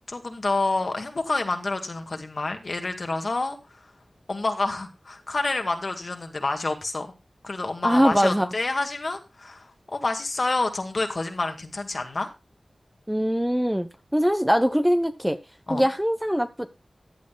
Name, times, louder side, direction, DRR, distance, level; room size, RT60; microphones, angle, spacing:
voice 1, 0.1-3.9 4.3-7.1 7.4-12.3 15.7-15.9, left 2 dB, 55° left, 2.0 m, -28 dB
voice 2, 7.8-8.5 13.1-15.4 15.7-16.7, equal, 5° right, 1.1 m, -22 dB
15.0 x 10.5 x 2.4 m
wide cardioid pair, 65°, 0 cm